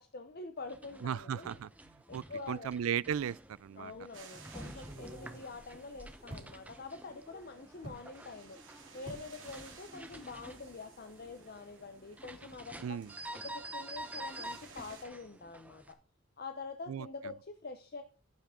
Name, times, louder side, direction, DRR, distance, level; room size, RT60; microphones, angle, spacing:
voice 1, 0.0-1.6 2.1-2.7 3.8-8.6 8.9-13.0 13.3-16.0 16.4-18.0, left 3 dB, 45° left, 0.7 m, -46 dB
sound 1, 0.6-15.9, right 1 dB, 5° right, 0.8 m, -49 dB
voice 2, 1.0-1.7 2.1-3.9 12.8-13.1 16.9-17.1, right 8 dB, 80° right, 0.3 m, -36 dB
sound 2, 3.6-3.7 4.5-6.5 7.8-8.1 9.0-9.3 9.6-10.0 10.2-10.4, right 1 dB, 30° right, 3.6 m, -50 dB
sound 3, 4.1-15.1, right 5 dB, 60° right, 3.1 m, -58 dB
14.5 x 5.9 x 3.6 m
head